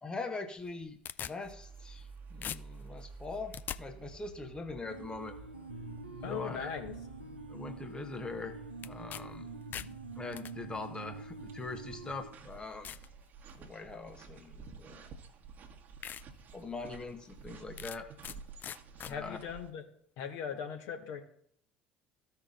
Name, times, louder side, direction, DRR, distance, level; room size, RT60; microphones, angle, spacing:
voice 1, 0.0-1.0 1.2-5.4 6.3-6.7 7.5-9.5 10.1-13.0 13.6-15.1 16.5-18.1 19.1-19.4, left 3 dB, 15° left, 6 dB, 0.9 m, -42 dB
sound 1, 0.6-2.1 2.4-3.8 8.8-9.2 9.5-10.5 11.4-11.5 12.1-12.2 12.8-13.1 13.6-13.9 15.1-15.2 15.6-15.7 16.0-16.2 16.7-16.8 17.8-18.4 18.6-19.1, left 9 dB, 35° left, 0.4 m, -42 dB
sound 2, 1.4-19.7, right 5 dB, 35° right, 1.4 m, -52 dB
sound 3, 4.9-12.3, right 3 dB, 85° right, 0.8 m, -46 dB
voice 2, 6.2-6.9 19.0-19.8 20.2-21.2, left 7 dB, 55° left, 3 dB, 1.4 m, -39 dB
15.0 x 5.6 x 2.5 m, 0.66 s
figure-of-eight pair, 65°, 5 cm